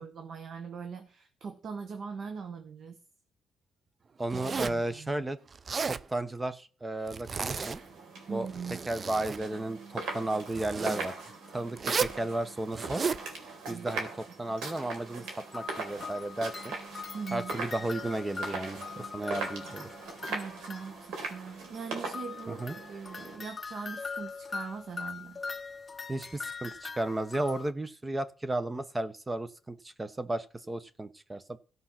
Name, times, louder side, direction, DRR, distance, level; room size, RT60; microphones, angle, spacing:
voice 1, 0.0-3.0 4.3-5.2 8.3-8.9 13.7-13.9 14.4-14.5 17.1-17.5 20.3-25.4, right 5 dB, 60° right, 6 dB, 1.4 m, -41 dB
voice 2, 4.2-5.4 5.8-7.8 8.3-8.5 8.9-11.1 11.5-13.1 13.7-14.1 14.4-16.8 17.3-19.9 22.5-22.8 26.1-31.6, right 2 dB, 20° right, 13 dB, 0.9 m, -34 dB
Zipper (clothing), 4.3-4.9 5.5-6.0 7.1-8.0 8.4-9.4 10.5-11.1 11.8-12.2 12.7-13.2, right 5 dB, 40° right, 0.5 m, -33 dB
sound 1, 7.3-23.4, right 3 dB, 80° right, 4.1 m, -41 dB
sound 2, 15.5-21.2 22.1-27.7, left 4 dB, 30° left, 0.8 m, -42 dB
15.0 x 5.5 x 5.8 m, 0.39 s
cardioid pair, 90°, 0 cm